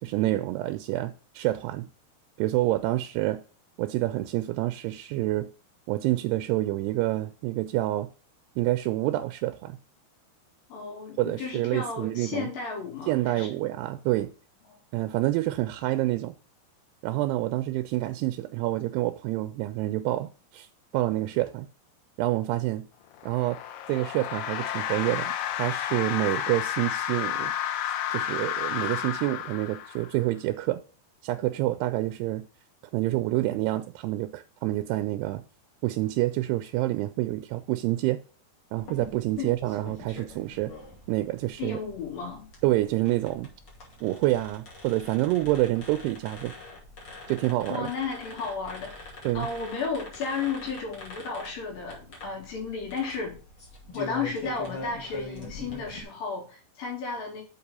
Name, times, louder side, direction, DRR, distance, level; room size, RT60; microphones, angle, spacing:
voice 1, 0.0-1.9 2.4-3.4 3.8-5.5 5.9-8.1 8.6-9.8 11.2-12.5 13.1-14.3 14.9-16.3 17.0-20.7 20.9-21.7 22.2-22.9 23.3-23.6 23.9-27.5 27.9-30.8 31.2-32.5 32.9-35.4 35.8-38.2 38.7-40.7 41.1-41.8 42.6-43.5 44.0-46.5 47.3-47.9 49.2-49.5, right 16 dB, 85° right, 2.6 m, -27 dB
voice 2, 10.7-13.5 14.7-14.8 39.4-39.6 41.6-42.5 47.7-49.1 49.3-53.4 53.9-57.4, left 5 dB, 60° left, 3.9 m, -33 dB
sound 1, 23.1-30.2, left 10 dB, 80° left, 2.0 m, -31 dB
sound 2, 38.8-56.0, left 2 dB, 40° left, 2.6 m, -44 dB
6.8 x 4.9 x 5.5 m
omnidirectional pair, 4.7 m